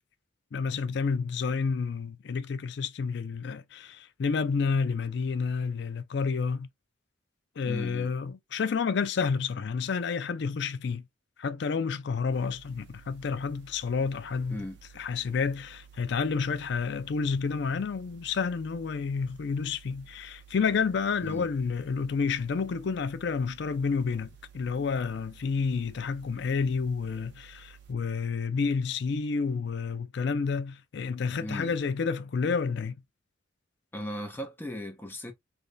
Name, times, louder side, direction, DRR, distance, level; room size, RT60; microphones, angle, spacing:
voice 1, 0.5-6.7 7.6-11.0 11.4-14.6 15.0-33.0, left 5 dB, 60° left, 0.4 m, -30 dB
voice 2, 7.6-8.1 14.5-14.8 21.2-21.5 31.4-31.8 33.9-35.3, equal, 10° left, 0.7 m, -37 dB
sound 1, 12.3-27.9, right 8 dB, 60° right, 0.9 m, -54 dB
3.3 x 2.2 x 3.8 m
head